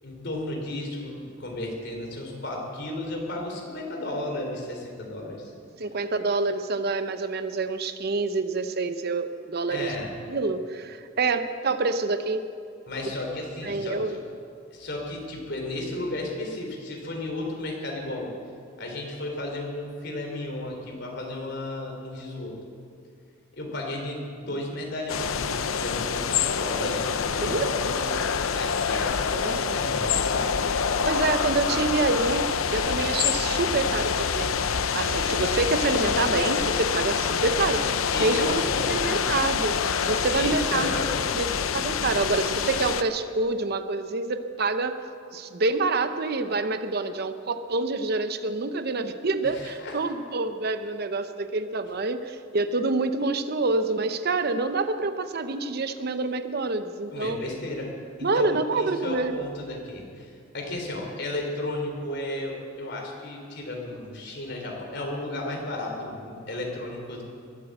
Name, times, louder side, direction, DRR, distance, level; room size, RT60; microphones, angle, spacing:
voice 1, 0.0-5.5 9.7-10.2 12.9-14.2 14.7-18.3 18.8-22.5 23.5-28.2 28.5-30.6 37.5-37.7 38.1-39.1 40.3-41.3 49.4-50.0 57.1-57.9 58.2-67.2, left 1 dB, 55° left, 0 dB, 3.7 m, -34 dB
voice 2, 5.8-9.9 10.3-12.4 13.6-14.2 27.4-27.7 29.3-29.8 31.0-34.5 34.9-37.8 38.2-39.7 40.0-41.0 41.3-45.0 45.3-57.4 58.2-59.3, right 3 dB, 50° right, 9 dB, 0.7 m, -27 dB
sound 1, 25.1-43.0, left 6 dB, 90° left, 0.7 m, -26 dB
21.5 x 8.5 x 7.9 m, 2.4 s
head